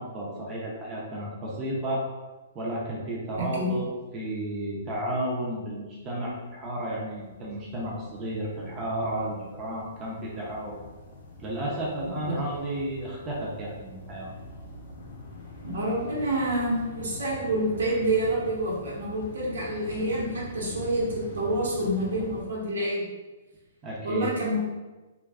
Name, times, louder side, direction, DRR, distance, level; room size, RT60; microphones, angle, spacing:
voice 1, 0.0-2.0 2.5-3.9 4.1-10.8 11.4-14.3 23.8-24.3, right 1 dB, 20° right, -5 dB, 0.4 m, -32 dB
voice 2, 3.4-3.7 12.3-12.4 15.6-23.0 24.0-24.6, right 1 dB, 80° right, -4 dB, 0.9 m, -28 dB
sound 1, 5.4-5.6 5.8-22.4, left 2 dB, 55° left, 0.5 m, -44 dB
2.4 x 2.3 x 2.3 m, 1.2 s
hypercardioid pair, 160°, 0 cm